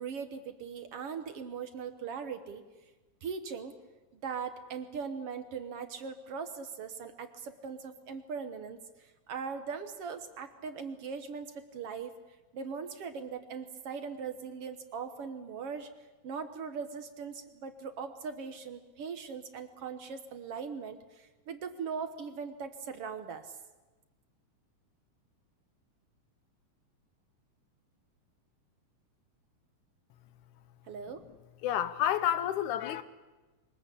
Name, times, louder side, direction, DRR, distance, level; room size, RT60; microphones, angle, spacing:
voice 1, 0.0-2.6 3.2-3.7 4.1-12.1 12.5-15.9 16.2-23.6 30.9-31.2, right 6 dB, 60° right, 1.9 m, -40 dB
voice 2, 31.6-33.0, left 11 dB, 85° left, 2.5 m, -29 dB
23.5 x 20.5 x 8.4 m
omnidirectional pair, 3.4 m